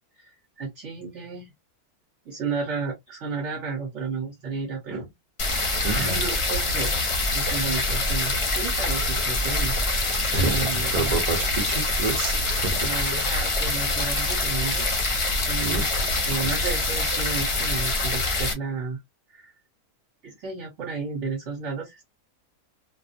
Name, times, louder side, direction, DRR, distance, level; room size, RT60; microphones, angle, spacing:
voice 1, 0.2-1.5 2.3-5.1 5.6-11.2 12.8-19.0 19.3-19.5 20.2-22.1, right 5 dB, 55° right, 1.2 m, -33 dB
sound 1, 5.4-18.5, left 2 dB, 55° left, 0.3 m, -25 dB
voice 2, 5.8-6.2 10.3-12.9 15.6-15.9 16.3-16.5, right 3 dB, 35° right, 0.8 m, -29 dB
2.6 x 2.0 x 2.5 m
omnidirectional pair, 1.5 m